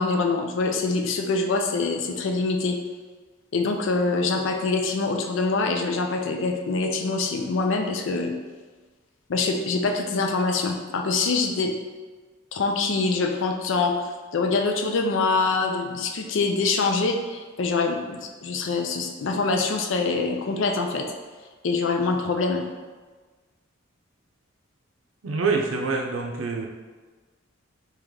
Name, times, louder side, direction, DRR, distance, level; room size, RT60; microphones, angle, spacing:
voice 1, 0.0-2.8 3.5-8.3 9.3-11.7 12.5-14.0 14.3-21.1 21.6-22.6, left 3 dB, 65° left, 4 dB, 0.4 m, -24 dB
voice 2, 25.2-26.7, right 4 dB, 75° right, 1 dB, 0.6 m, -26 dB
3.1 x 3.0 x 3.7 m, 1.3 s
head